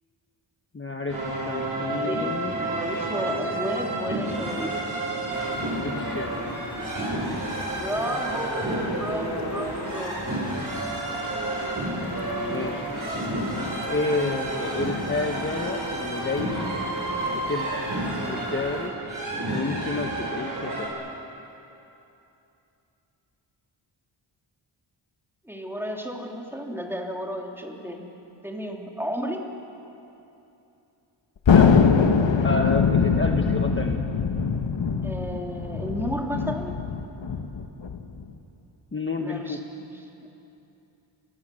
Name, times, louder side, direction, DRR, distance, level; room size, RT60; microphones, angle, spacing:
voice 1, 0.7-2.5 5.8-6.3 12.5-12.9 13.9-16.7 17.5-17.9 18.3-18.9 19.5-20.9 31.5-31.7 32.4-34.0 38.9-39.6, left 3 dB, 25° left, 3 dB, 1.3 m, -30 dB
sound 1, 1.1-20.9, right 1 dB, 40° right, 7.2 m, -30 dB
voice 2, 1.8-4.8 7.7-10.2 25.4-28.1 28.4-29.5 35.0-36.7 39.2-40.1, equal, 5° right, 0 dB, 3.1 m, -33 dB
sound 2, 5.3-18.9, left 3 dB, 50° left, 3.3 m, -40 dB
Thunder, 31.5-38.3, left 6 dB, 65° left, 1.8 m, -22 dB
29.5 x 25.5 x 7.8 m, 2.9 s
wide cardioid pair, 145°, 48 cm